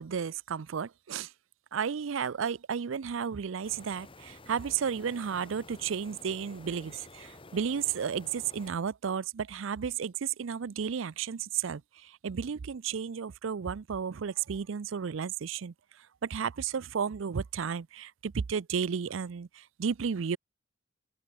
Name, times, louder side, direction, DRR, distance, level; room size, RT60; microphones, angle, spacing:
voice 1, 0.0-1.3 1.7-20.4, right 7 dB, 70° right, 0.5 m, -33 dB
sound 1, 3.6-8.7, left 2 dB, 25° left, 2.3 m, -51 dB
head